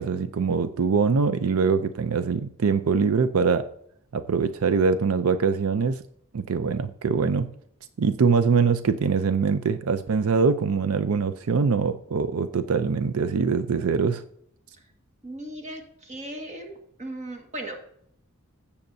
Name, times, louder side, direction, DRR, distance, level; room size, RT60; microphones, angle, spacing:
voice 1, 0.0-3.7 4.1-6.0 6.3-7.5 8.0-14.2, right 5 dB, 85° right, 11 dB, 0.5 m, -23 dB
voice 2, 15.2-17.8, right 1 dB, 35° right, 3 dB, 1.6 m, -37 dB
16.0 x 7.1 x 2.7 m, 0.69 s
head